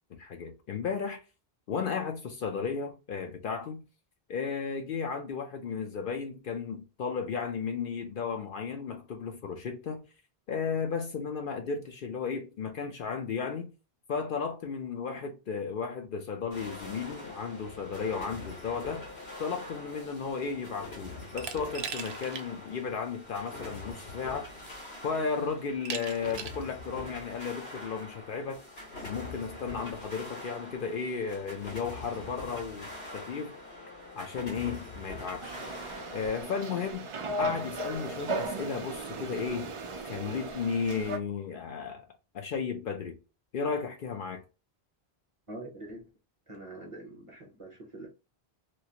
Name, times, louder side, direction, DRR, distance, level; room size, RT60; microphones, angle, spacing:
voice 1, 0.2-1.2 1.7-3.8 4.3-10.0 10.5-13.7 14.1-19.0 19.4-24.5 25.0-28.6 29.0-33.6 34.2-35.6 36.1-37.1 37.4-39.7 40.0-42.0 42.3-43.2 43.5-44.4, left 5 dB, 60° left, 0.7 m, -34 dB
sound 1, 16.5-36.3, left 2 dB, 80° left, 1.6 m, -44 dB
Glass, 21.4-22.5 22.9-23.0 24.1-24.2 24.7-25.1 25.9-26.7, right 6 dB, 80° right, 0.8 m, -39 dB
sound 2, 35.4-41.2, right 1 dB, 55° right, 0.3 m, -36 dB
voice 2, 45.5-46.0 46.5-48.1, right 2 dB, 35° right, 0.8 m, -44 dB
3.0 x 2.4 x 2.8 m
omnidirectional pair, 1.1 m